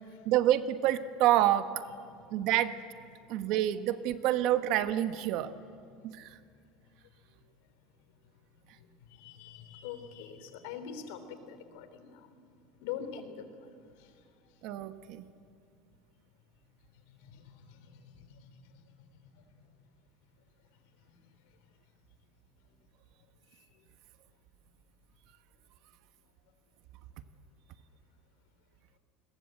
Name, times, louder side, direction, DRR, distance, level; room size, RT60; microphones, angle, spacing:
voice 1, 0.2-1.9 2.3-2.7 3.3-5.5 6.0-6.3 14.6-15.2, right 12 dB, 50° right, 10 dB, 1.2 m, -27 dB
voice 2, 2.1-2.5 8.8-12.3 12.8-14.1 16.9-18.7 19.3-19.4 23.5-23.7, left 8 dB, 75° left, 9 dB, 3.3 m, -45 dB
29.5 x 21.5 x 7.9 m, 2.4 s
cardioid pair, 165°, 0 cm